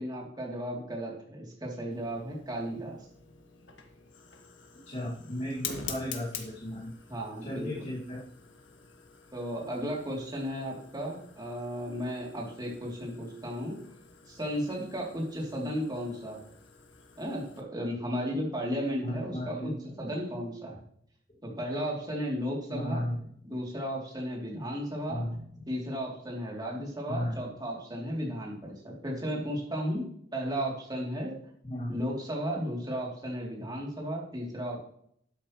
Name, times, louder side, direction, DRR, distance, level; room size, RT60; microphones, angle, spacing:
voice 1, 0.0-3.0 7.1-7.7 9.3-13.8 14.3-16.5 17.2-19.7 20.0-20.8 21.4-23.0 23.4-25.2 25.7-30.0 30.3-31.3 31.9-34.8, equal, 20° right, -2 dB, 3.1 m, -34 dB
Fire, 1.9-17.6, left 6 dB, 85° left, 1.6 m, -47 dB
voice 2, 4.9-6.9 7.4-8.2 19.0-19.8 22.7-23.2 25.1-25.4 27.1-27.4 31.6-31.9, left 1 dB, 35° left, -5 dB, 2.2 m, -35 dB
12.0 x 8.7 x 3.2 m, 0.66 s
head